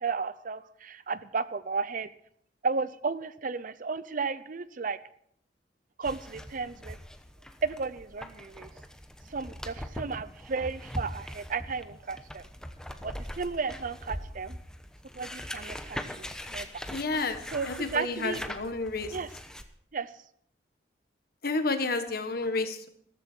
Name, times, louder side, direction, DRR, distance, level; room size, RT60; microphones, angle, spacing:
voice 1, 0.0-2.1 2.6-5.0 6.0-7.0 7.6-8.7 9.3-12.5 13.0-14.6 15.1-16.8 17.5-18.4 19.1-19.3 19.9-20.1, right 4 dB, 50° right, 15 dB, 0.6 m, -33 dB
sound 1, 6.0-19.6, equal, 5° left, 1.0 m, -41 dB
voice 2, 16.9-17.4 17.7-19.1 21.4-22.9, left 3 dB, 60° left, 8 dB, 1.5 m, -30 dB
14.5 x 14.0 x 4.6 m, 0.67 s
head